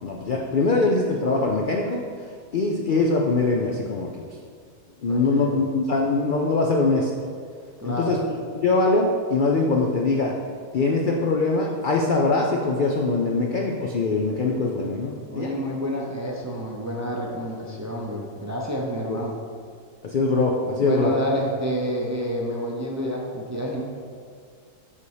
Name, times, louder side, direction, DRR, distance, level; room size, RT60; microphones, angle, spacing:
voice 1, 0.0-2.1 2.5-4.1 5.0-7.1 7.8-8.2 8.6-10.3 10.7-15.5 19.1-19.2 20.0-21.1, left 3 dB, 85° left, 0 dB, 0.4 m, -22 dB
voice 2, 5.1-5.6 7.8-8.2 15.3-19.4 20.8-23.8, equal, 20° right, -2 dB, 0.4 m, -29 dB
7.5 x 4.1 x 4.9 m, 2.1 s
omnidirectional pair, 1.6 m